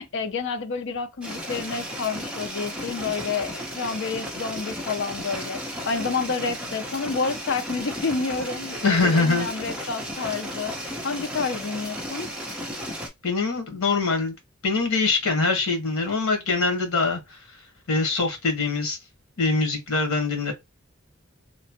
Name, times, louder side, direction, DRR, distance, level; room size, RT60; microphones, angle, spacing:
voice 1, 0.0-10.8 11.0-12.3, left 4 dB, 60° left, 0.5 m, -29 dB
sound 1, 1.2-13.1, equal, 5° right, 0.7 m, -34 dB
voice 2, 8.8-9.5 13.2-14.4 14.6-17.4 17.9-19.0 19.4-20.5, left 3 dB, 90° left, 1.1 m, -23 dB
2.9 x 2.1 x 2.8 m
head